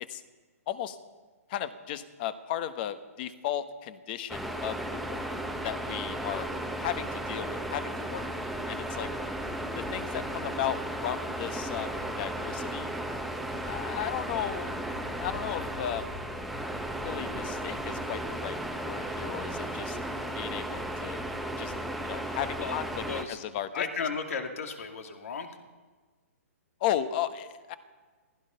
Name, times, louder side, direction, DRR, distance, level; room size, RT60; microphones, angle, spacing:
voice 1, 0.7-1.0 1.5-5.4 5.6-6.5 6.8-9.1 9.7-12.9 13.6-14.8 15.2-16.1 17.0-18.6 18.8-20.0 20.3-21.7 22.0-23.8 26.8-27.7, left 11 dB, 40° left, 11 dB, 1.1 m, -35 dB
sound 1, 4.3-23.2, right 1 dB, ahead, 1.0 m, -35 dB
voice 2, 22.6-23.4 23.7-25.6, left 5 dB, 70° left, 5 dB, 2.4 m, -35 dB
16.5 x 15.5 x 5.7 m, 1.4 s
hypercardioid pair, 150°, 8 cm